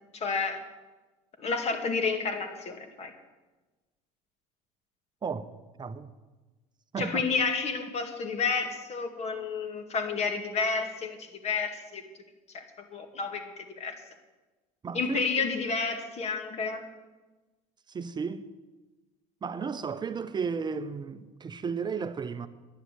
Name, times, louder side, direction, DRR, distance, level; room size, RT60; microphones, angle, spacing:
voice 1, 0.1-0.6 1.4-3.1 7.0-11.2 11.4-12.0 12.5-12.6 12.9-14.0 14.9-16.8, left 4 dB, 40° left, 2.1 m, -30 dB
voice 2, 5.2-5.5 5.8-6.1 6.9-7.2 14.8-15.2 17.9-18.5 19.4-22.5, right 5 dB, 25° right, 0.8 m, -34 dB
11.0 x 10.5 x 7.7 m
supercardioid pair, 95°, 16 cm